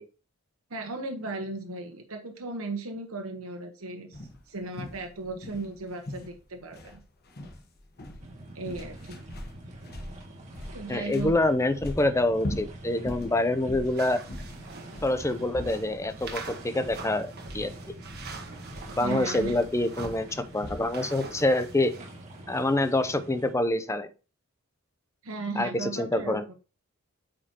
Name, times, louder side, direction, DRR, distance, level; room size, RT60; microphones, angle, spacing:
voice 1, 0.7-4.2 4.5-7.0 8.5-9.2 10.7-11.3 19.0-19.6 25.2-26.5, right 3 dB, 85° right, 3 dB, 1.2 m, -36 dB
sound 1, 4.1-21.0, left 1 dB, 50° left, 1.1 m, -41 dB
sound 2, 8.2-23.5, right 1 dB, 35° right, 1.9 m, -46 dB
voice 2, 10.9-14.2 15.0-17.7 19.0-20.3 20.5-21.9 22.5-24.1 25.6-26.4, left 2 dB, 15° left, 11 dB, 0.6 m, -26 dB
sound 3, 13.8-22.1, right 4 dB, 50° right, 1.4 m, -44 dB
8.4 x 5.1 x 2.9 m, 0.33 s
head